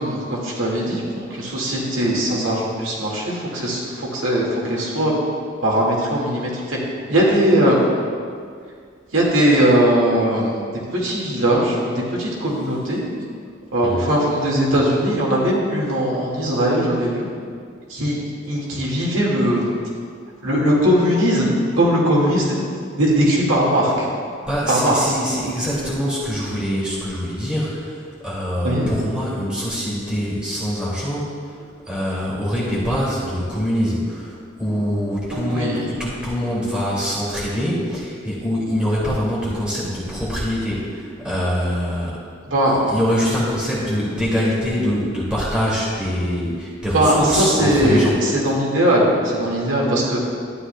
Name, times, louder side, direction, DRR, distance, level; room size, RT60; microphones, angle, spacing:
voice 1, 0.0-5.2 5.6-6.8 7.1-7.9 9.1-10.5 10.9-13.1 13.7-17.3 17.9-18.2 18.5-19.7 20.4-22.6 22.9-24.1 24.7-25.0 28.6-28.9 35.3-35.8 42.5-42.9 46.9-50.2, equal, 80° right, -4 dB, 1.9 m, -19 dB
voice 2, 24.4-31.6 31.9-42.1 42.7-48.1, equal, 5° right, -8 dB, 2.2 m, -24 dB
12.5 x 9.7 x 2.2 m, 2.1 s
head